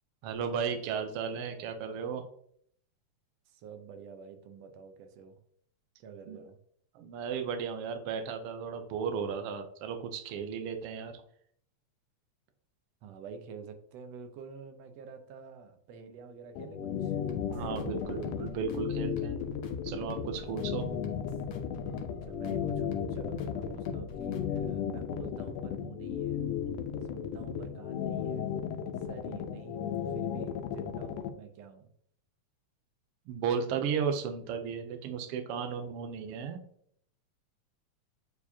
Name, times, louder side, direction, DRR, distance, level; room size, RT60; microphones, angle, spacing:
voice 1, 0.2-2.2 6.3-6.4 6.9-11.2 17.5-19.4 19.8-20.9 33.3-36.6, right 6 dB, 85° right, 6 dB, 1.3 m, -34 dB
voice 2, 3.5-5.4 6.0-6.6 13.0-17.2 17.5-18.0 22.2-26.4 27.1-28.5 29.0-29.8 30.1-31.9, right 6 dB, 70° right, 7 dB, 1.7 m, -48 dB
sound 1, 16.6-31.3, left 9 dB, 85° left, 2.2 m, -34 dB
sound 2, 17.3-24.8, left 5 dB, 70° left, 1.1 m, -46 dB
8.8 x 4.7 x 2.8 m, 0.64 s
omnidirectional pair, 3.5 m